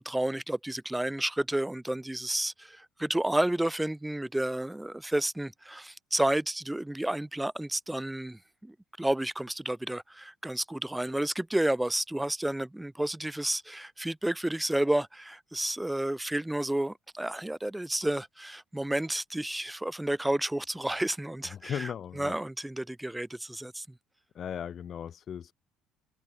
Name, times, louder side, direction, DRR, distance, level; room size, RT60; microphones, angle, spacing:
voice 1, 0.0-21.9 22.2-23.9, right 1 dB, 10° right, 2.4 m, -31 dB
voice 2, 21.5-22.4 24.3-25.5, left 8 dB, 50° left, 2.8 m, -37 dB
hypercardioid pair, 60°, 0 cm